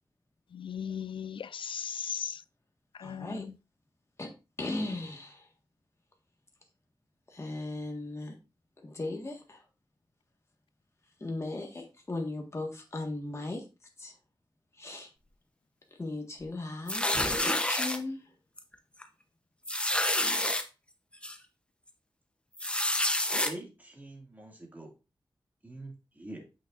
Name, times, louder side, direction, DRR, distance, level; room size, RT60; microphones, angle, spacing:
voice 1, 0.5-2.3 3.0-3.5, left 8 dB, 75° left, 0.3 m, -37 dB
voice 2, 3.0-3.5 4.2-4.3 4.6-5.4 7.3-8.3 8.8-9.6 11.2-13.6 14.0-14.1 14.8-15.1 16.0-17.1 17.4-18.2, left 2 dB, 35° left, 1.6 m, -37 dB
sound 1, 16.9-18.0 18.6-18.7 19.0-19.1 19.7-20.6 21.2-21.3 22.6-23.5, left 1 dB, 10° left, 0.8 m, -28 dB
voice 3, 23.4-24.9 25.6-26.4, right 1 dB, 20° right, 2.3 m, -44 dB
8.4 x 6.1 x 2.5 m
wide cardioid pair, 125°, 9 cm